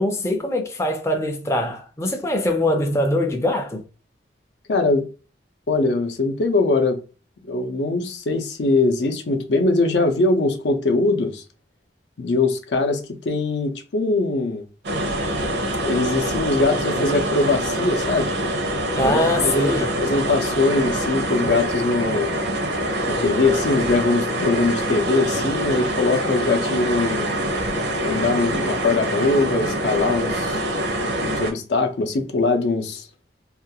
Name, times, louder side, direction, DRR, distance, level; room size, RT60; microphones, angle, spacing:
voice 1, 0.0-3.8 19.0-19.9, left 1 dB, 15° left, 0.4 m, -22 dB
voice 2, 4.7-5.1 5.7-7.0 7.4-11.4 12.2-13.0 13.3-14.6 15.8-18.3 19.0-22.3 23.1-27.4 28.0-30.6 31.2-33.1, left 3 dB, 80° left, 0.5 m, -22 dB
sound 1, 14.8-31.5, right 1 dB, 70° right, 0.6 m, -25 dB
2.4 x 2.3 x 2.7 m
head